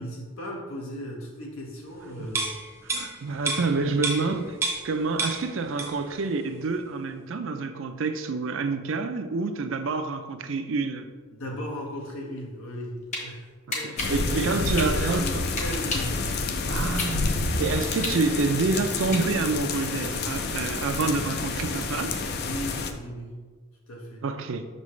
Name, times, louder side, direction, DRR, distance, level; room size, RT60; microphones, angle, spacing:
voice 1, 0.0-2.5 11.3-13.5 13.7-16.8 22.4-23.4 23.9-24.3, equal, 90° left, -1 dB, 1.3 m, -37 dB
sound 1, 2.3-4.9 5.2-6.1 6.5-6.6, right 3 dB, 10° right, 0.6 m, -30 dB
voice 2, 2.8-4.6 4.8-11.1 13.7-15.4 16.7-22.2 24.2-24.7, right 3 dB, 65° right, 8 dB, 0.5 m, -28 dB
sound 2, 12.7-13.2 13.7-16.2 16.6-19.6, left 2 dB, 35° left, 1.0 m, -33 dB
sound 3, 14.0-22.9, left 3 dB, 50° left, 0.4 m, -29 dB
6.1 x 5.3 x 3.2 m, 1.4 s
head